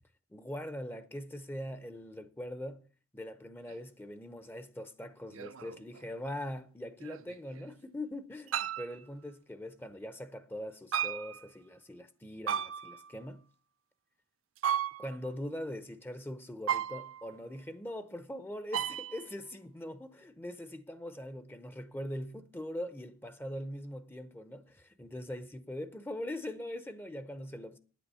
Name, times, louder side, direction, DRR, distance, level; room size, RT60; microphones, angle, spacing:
voice 1, 0.3-2.9 3.1-13.4 15.0-27.8, left 1 dB, 10° left, 0.7 m, -42 dB
sound 1, 3.7-3.8 5.3-6.0 7.0-7.7 8.5-9.0 10.9-11.4 12.5-13.1 14.6-15.3 16.7-17.4 18.7-19.3, right 9 dB, 75° right, 0.6 m, -35 dB
9.5 x 8.3 x 6.9 m
head